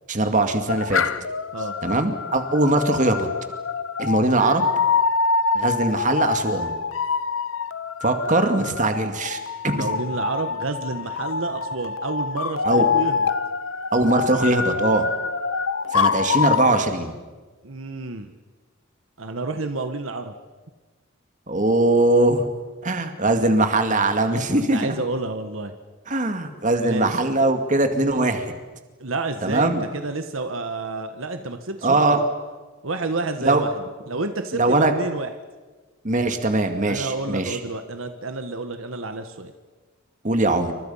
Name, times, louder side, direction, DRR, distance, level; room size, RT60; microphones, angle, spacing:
voice 1, 0.1-1.0 1.8-3.3 4.0-4.6 5.5-6.8 8.0-9.4 9.6-9.9 12.6-12.9 13.9-15.0 15.9-17.1 21.5-22.4 22.8-24.8 26.1-28.6 29.4-29.8 31.8-32.2 33.4-33.6 34.5-34.9 36.0-37.6 40.2-40.7, right 2 dB, 35° right, 6 dB, 2.3 m, -21 dB
sound 1, 0.7-16.8, left 5 dB, 70° left, 0.9 m, -25 dB
voice 2, 9.7-13.3 17.6-18.3 19.2-20.3 24.2-25.7 26.8-27.2 29.0-32.3 32.8-35.3 36.9-39.5, right 3 dB, 75° right, 7 dB, 1.4 m, -30 dB
28.5 x 25.0 x 5.7 m, 1.3 s
head